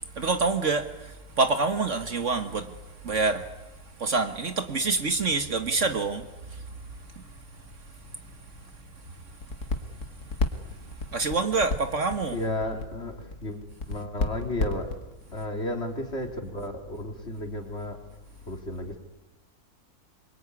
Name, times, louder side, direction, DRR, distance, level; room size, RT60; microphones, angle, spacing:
voice 1, 0.2-0.9 1.4-2.7 3.0-3.4 4.0-6.2 11.1-12.4, right 3 dB, 50° right, 1.8 m, -26 dB
sound 1, 9.4-15.2, left 3 dB, 75° left, 2.7 m, -29 dB
voice 2, 12.3-13.2 13.4-13.6 13.9-14.9 15.3-18.0 18.5-19.0, left 1 dB, 40° left, 3.7 m, -33 dB
26.0 x 23.5 x 9.7 m
omnidirectional pair, 1.7 m